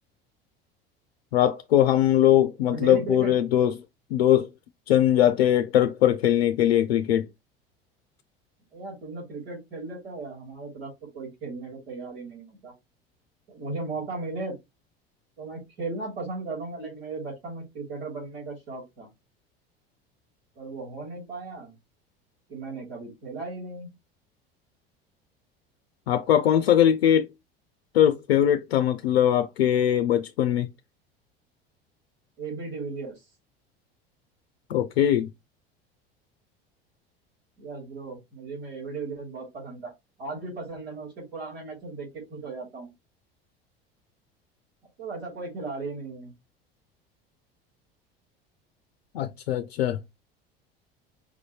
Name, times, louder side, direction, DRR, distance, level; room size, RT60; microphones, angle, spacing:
voice 1, 1.3-3.7 4.1-4.5 4.9-7.3 26.1-27.3 27.9-30.7 34.7-35.3 49.1-50.0, left 11 dB, 85° left, 0.5 m, -21 dB
voice 2, 2.7-3.3 8.7-12.7 13.5-14.5 15.4-19.1 20.5-21.7 22.5-23.9 32.4-33.2 37.6-39.9 40.2-42.9 45.0-46.3, right 3 dB, 80° right, 3.2 m, -36 dB
5.2 x 2.7 x 3.1 m
hypercardioid pair, 70°, 30 cm